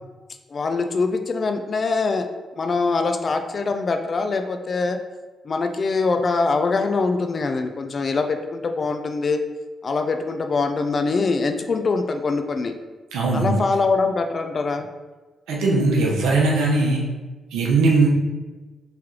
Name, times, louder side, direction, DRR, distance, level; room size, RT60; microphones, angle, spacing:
voice 1, 0.5-2.3 2.6-5.0 5.4-9.4 9.8-12.7 13.3-14.9, left 4 dB, 50° left, 6 dB, 0.3 m, -23 dB
voice 2, 13.1-13.6 15.5-17.0 17.5-18.1, right 3 dB, 90° right, -2 dB, 0.7 m, -19 dB
3.1 x 3.0 x 3.7 m, 1.3 s
supercardioid pair, 60°, 0 cm